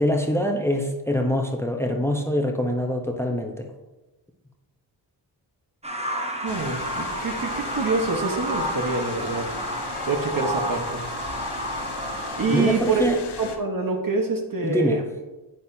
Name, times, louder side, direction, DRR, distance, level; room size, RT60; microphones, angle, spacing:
voice 1, 0.0-3.7 12.5-13.2 14.6-15.0, left 1 dB, 5° left, 3 dB, 0.9 m, -24 dB
sound 1, 5.8-12.7, right 1 dB, 15° right, 1.0 m, -31 dB
voice 2, 6.4-9.5 10.1-11.0 12.4-13.0 13.4-15.0, right 4 dB, 45° right, 3 dB, 1.3 m, -26 dB
sound 2, 6.5-13.6, left 5 dB, 60° left, 1.0 m, -37 dB
8.1 x 6.0 x 2.8 m, 1.1 s
supercardioid pair, 40°, 45 cm